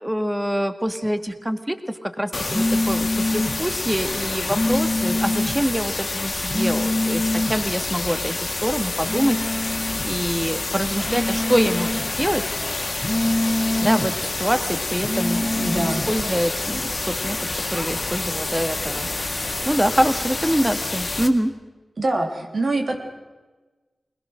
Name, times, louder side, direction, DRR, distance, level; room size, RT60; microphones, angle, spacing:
voice 1, 0.0-9.4 10.0-12.4 13.8-17.4 17.7-19.4 19.7-21.5, equal, 10° right, 8 dB, 1.8 m, -25 dB
sound 1, 2.3-21.3, left 2 dB, 45° left, 1.8 m, -28 dB
sound 2, 2.5-3.6 4.5-5.6 6.5-7.6 9.0-10.1 11.0-12.1 13.0-14.1 15.0-16.1, left 1 dB, 20° left, 2.4 m, -24 dB
sound 3, 10.9-20.6, right 1 dB, 35° right, 5.0 m, -40 dB
voice 2, 15.6-16.0 22.0-23.0, right 2 dB, 60° right, 3 dB, 3.4 m, -24 dB
21.5 x 19.5 x 6.5 m, 1.2 s
cardioid pair, 50°, 0 cm